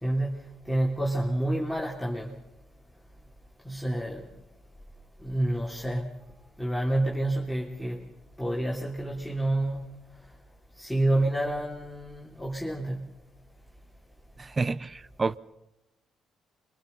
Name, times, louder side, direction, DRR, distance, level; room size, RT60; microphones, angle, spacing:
voice 1, 0.0-2.4 3.7-4.2 5.2-6.2 6.6-8.0 8.4-9.9 10.8-13.1, right 1 dB, ahead, 3.5 m, -29 dB
voice 2, 14.4-15.4, right 3 dB, 30° right, 0.8 m, -29 dB
29.0 x 24.5 x 5.6 m
cardioid pair, 90°, 0 cm